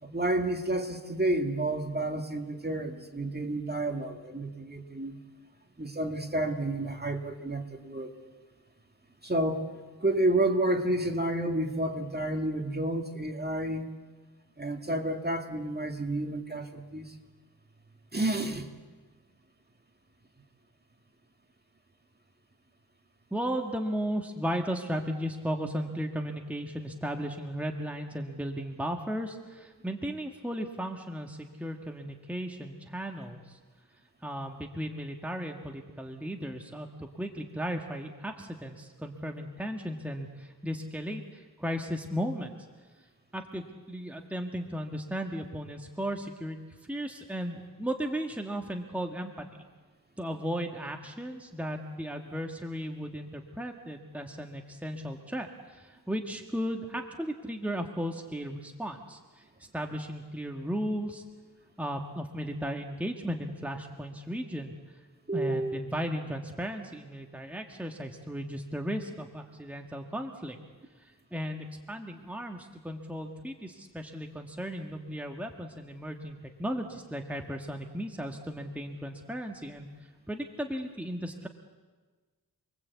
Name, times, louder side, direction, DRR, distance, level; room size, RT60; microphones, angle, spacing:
voice 1, 0.0-5.2 5.8-8.1 9.2-9.6 10.0-13.9 14.6-17.1 18.1-18.7 65.3-65.8, right 1 dB, 25° right, 4 dB, 2.2 m, -30 dB
voice 2, 23.3-33.6 34.2-42.5 43.3-46.6 46.9-49.5 50.2-61.2 61.8-64.7 65.3-70.6 71.0-79.9 80.3-81.5, equal, 5° right, 3 dB, 1.7 m, -35 dB
28.5 x 22.0 x 8.3 m, 1.4 s
wide cardioid pair, 105°, 38 cm